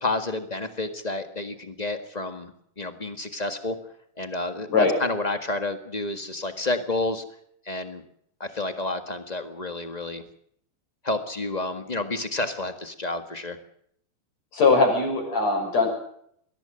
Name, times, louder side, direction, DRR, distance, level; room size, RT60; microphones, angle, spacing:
voice 1, 0.0-2.5 2.8-3.8 4.2-7.2 7.7-8.0 8.4-10.2 11.0-13.6, left 2 dB, 25° left, 9 dB, 0.8 m, -30 dB
voice 2, 14.5-15.9, left 4 dB, 55° left, 2 dB, 7.3 m, -20 dB
22.0 x 17.0 x 7.8 m, 0.67 s
omnidirectional pair, 3.7 m